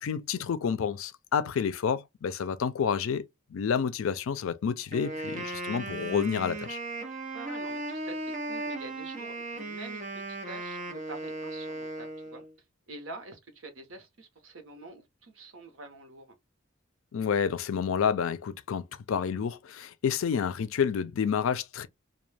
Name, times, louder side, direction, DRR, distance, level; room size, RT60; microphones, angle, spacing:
voice 1, 0.0-3.2 3.5-6.8 17.1-21.9, left 7 dB, 80° left, 0.4 m, -29 dB
Wind instrument woodwind instrument, 4.9-12.5, right 2 dB, 35° right, 0.7 m, -37 dB
voice 2, 7.3-10.0 10.4-12.4 12.9-16.4, right 3 dB, 75° right, 0.9 m, -46 dB
2.3 x 2.2 x 3.2 m
head